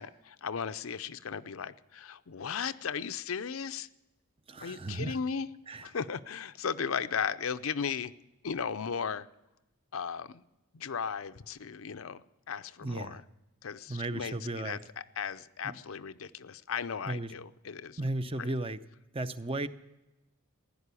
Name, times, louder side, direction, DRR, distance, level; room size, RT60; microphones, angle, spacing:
voice 1, 0.0-3.9 4.6-5.5 5.8-8.1 8.4-9.3 9.9-10.4 10.7-13.2 13.6-14.8 15.2-18.0 18.4-18.5, left 6 dB, 80° left, 12 dB, 0.6 m, -36 dB
voice 2, 4.5-5.2 5.7-5.9 12.8-13.2 13.9-14.8 15.6-15.8 17.0-17.3 18.0-18.8 19.1-19.7, right 2 dB, 25° right, 11 dB, 0.6 m, -35 dB
16.0 x 10.5 x 8.3 m, 0.96 s
head